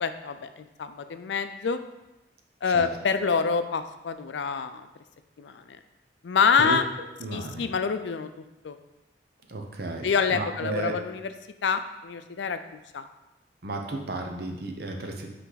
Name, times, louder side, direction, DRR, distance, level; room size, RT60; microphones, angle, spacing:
voice 1, 0.0-1.8 2.6-4.9 5.4-5.6 6.2-6.8 7.3-8.3 8.6-8.7 10.0-11.3 11.6-12.6 12.9-13.1, left 5 dB, 85° left, 9 dB, 0.4 m, -26 dB
voice 2, 7.2-7.7 9.5-10.9 13.6-15.3, right 2 dB, 60° right, 2 dB, 0.8 m, -33 dB
8.3 x 3.3 x 3.9 m, 0.99 s
head